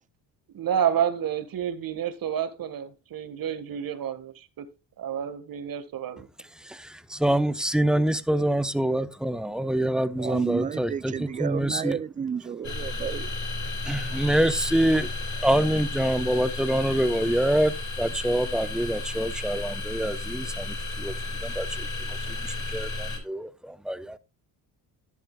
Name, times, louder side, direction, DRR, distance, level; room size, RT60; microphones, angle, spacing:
voice 1, 0.5-4.3 4.6-4.7 5.0-6.3, right 9 dB, 50° right, 1.7 m, -29 dB
voice 2, 6.6-12.0 12.4-12.6 13.8-15.1 15.4-21.1 21.4-24.2, right 1 dB, ahead, 0.8 m, -26 dB
voice 3, 10.2-13.3, right 7 dB, 20° right, 0.4 m, -31 dB
sound 1, 12.6-23.2, left 2 dB, 40° left, 4.5 m, -33 dB
12.0 x 10.5 x 2.3 m
supercardioid pair, 80°, 43 cm